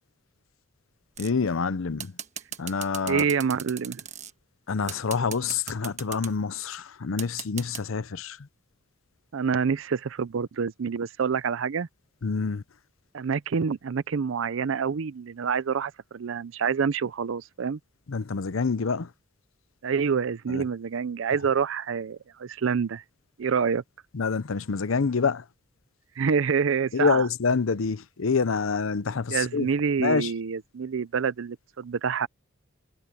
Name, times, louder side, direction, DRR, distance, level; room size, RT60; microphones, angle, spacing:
voice 1, 1.2-2.1 2.6-3.2 4.7-8.4 12.2-12.6 18.1-19.1 20.5-20.6 24.1-25.4 26.9-29.7 30.0-30.3, left 5 dB, 80° left, 0.7 m, -27 dB
sound 1, 1.2-1.5 2.0-4.3 4.9-6.3 7.2-7.8, right 9 dB, 35° right, 1.4 m, -37 dB
voice 2, 3.1-4.0 9.3-11.9 13.1-17.8 19.8-23.0 23.4-23.8 26.2-27.3 29.3-32.3, right 6 dB, 70° right, 0.5 m, -27 dB
head